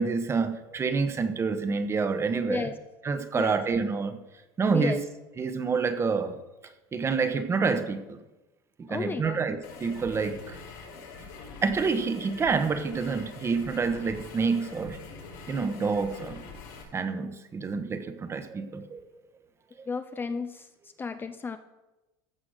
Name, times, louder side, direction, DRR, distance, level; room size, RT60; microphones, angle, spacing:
voice 1, 0.0-2.7 3.0-4.2 4.6-5.0 5.4-6.4 6.9-8.2 8.8-10.6 11.6-15.0 15.5-16.4 16.9-19.0 19.8-19.9, right 4 dB, 25° right, 1.0 m, -28 dB
voice 2, 8.9-9.4 19.9-21.6, left 5 dB, 20° left, 0.5 m, -33 dB
sound 1, 9.6-16.8, left 4 dB, 80° left, 5.0 m, -44 dB
14.0 x 5.8 x 6.5 m
supercardioid pair, 120°, 11 cm